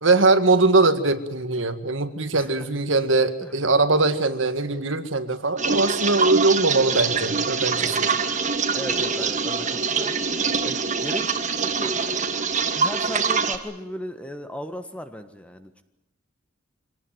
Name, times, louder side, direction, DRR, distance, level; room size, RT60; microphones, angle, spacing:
voice 1, 0.0-8.1, right 3 dB, 70° right, 8 dB, 1.8 m, -21 dB
voice 2, 3.4-3.7 7.8-8.4 8.7-12.2 12.7-15.8, equal, 5° left, 8 dB, 1.5 m, -37 dB
sound 1, 5.6-13.6, right 5 dB, 35° right, 1.7 m, -24 dB
25.5 x 18.5 x 9.3 m, 0.96 s
head